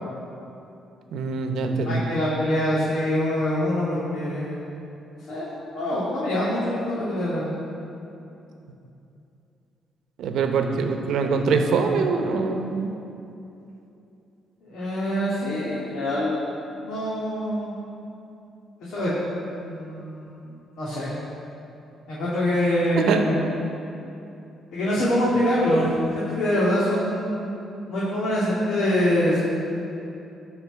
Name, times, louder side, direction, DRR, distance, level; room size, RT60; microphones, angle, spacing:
voice 1, 1.1-2.0 10.2-12.9 22.9-23.2, right 4 dB, 80° right, 5 dB, 0.9 m, -23 dB
voice 2, 1.8-4.8 5.3-7.6 14.6-16.4 16.8-17.7 18.8-19.1 19.5-21.1 22.1-23.4 24.7-27.5 27.9-29.4, left 1 dB, 80° left, -8 dB, 2.2 m, -25 dB
12.5 x 4.4 x 7.4 m, 2.8 s
cardioid pair, 90°, 0 cm